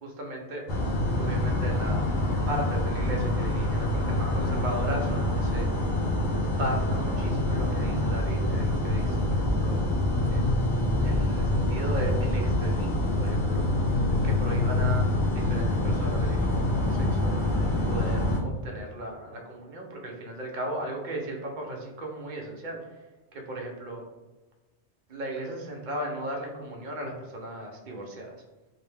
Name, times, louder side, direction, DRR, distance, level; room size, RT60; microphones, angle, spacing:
voice 1, 0.0-2.2 2.5-5.9 6.4-9.8 10.3-10.4 10.7-13.6 14.2-15.1 15.3-17.5 17.9-23.0 23.3-24.0 25.1-28.4, right 1 dB, 55° right, 0 dB, 0.6 m, -36 dB
sound 1, 0.7-18.4, left 1 dB, 65° left, 0.8 m, -26 dB
2.6 x 2.1 x 3.1 m, 1.2 s
omnidirectional pair, 1.1 m